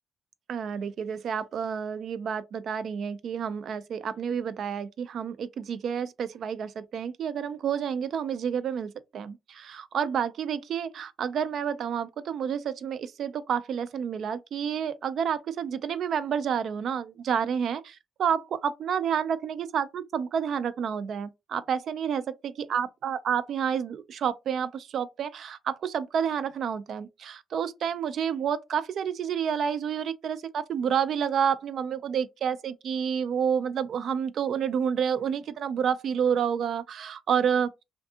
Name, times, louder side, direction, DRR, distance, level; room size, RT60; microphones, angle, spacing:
voice 1, 0.5-37.7, right 7 dB, 65° right, 0.3 m, -29 dB
2.6 x 2.5 x 2.3 m
cardioid pair, 90°, 0 cm